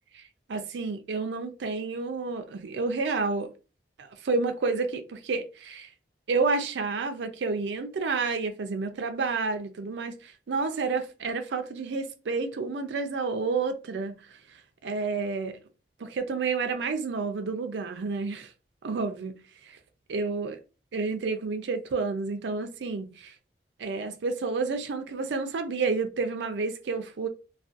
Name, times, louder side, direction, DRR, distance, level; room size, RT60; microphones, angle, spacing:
voice 1, 0.5-3.5 4.0-5.9 6.3-14.1 14.8-15.6 16.0-18.5 18.8-19.4 19.6-19.8 20.1-20.6 20.9-23.3 23.8-27.3, right 4 dB, 75° right, 0.4 m, -30 dB
2.4 x 2.2 x 2.5 m
head